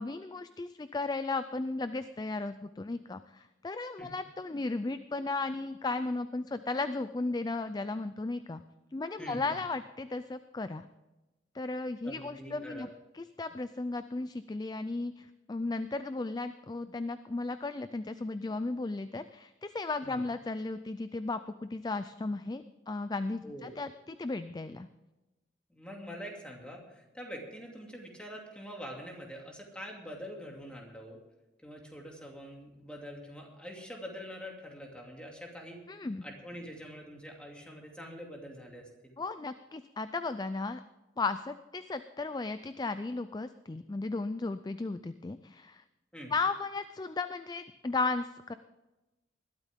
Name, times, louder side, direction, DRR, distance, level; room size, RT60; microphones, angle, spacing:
voice 1, 0.0-8.6 8.9-10.8 11.5-12.9 13.1-24.9 35.9-36.2 39.2-40.8 41.2-45.8 46.3-48.5, left 3 dB, 20° left, 12 dB, 0.4 m, -35 dB
voice 2, 9.2-9.6 12.0-12.9 20.0-20.2 23.4-23.7 25.7-31.2 31.6-35.8 36.2-39.2 46.1-46.3, equal, 5° left, 0 dB, 2.6 m, -45 dB
20.5 x 13.0 x 3.6 m, 1.1 s
head